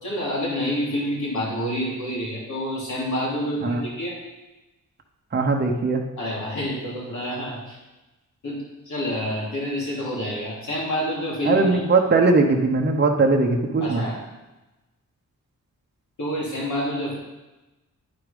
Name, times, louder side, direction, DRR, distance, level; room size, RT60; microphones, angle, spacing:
voice 1, 0.0-4.1 6.2-7.8 8.4-11.8 13.8-14.2 16.2-17.2, equal, 65° left, -5 dB, 3.1 m, -28 dB
voice 2, 5.3-6.0 11.4-14.0, right 3 dB, 30° right, 1 dB, 0.9 m, -20 dB
9.6 x 4.7 x 5.2 m, 1.1 s
cardioid pair, 80°, 32 cm